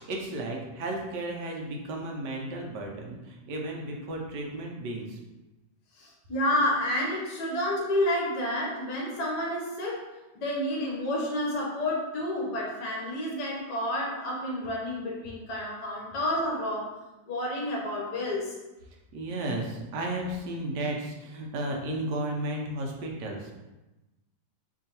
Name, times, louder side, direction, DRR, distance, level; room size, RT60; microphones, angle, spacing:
voice 1, 0.0-5.2 19.1-23.5, right 1 dB, 75° right, 0 dB, 1.2 m, -34 dB
voice 2, 6.0-16.9 17.3-18.5, left 1 dB, 70° left, -3 dB, 1.5 m, -30 dB
4.5 x 2.9 x 2.8 m, 1.0 s
omnidirectional pair, 1.9 m